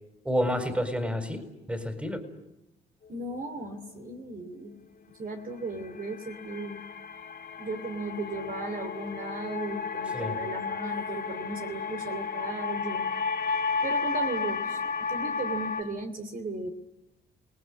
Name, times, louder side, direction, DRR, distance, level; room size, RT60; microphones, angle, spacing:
voice 1, 0.2-2.2 10.1-10.4, equal, 5° right, 9 dB, 4.6 m, -30 dB
voice 2, 3.1-4.9 5.1-6.8 7.6-13.1 13.8-14.8 15.1-16.7, right 2 dB, 45° right, 6 dB, 3.0 m, -36 dB
sound 1, 5.6-15.8, left 5 dB, 50° left, 2.1 m, -33 dB
28.0 x 19.0 x 9.8 m, 0.90 s
cardioid pair, 90°, 20 cm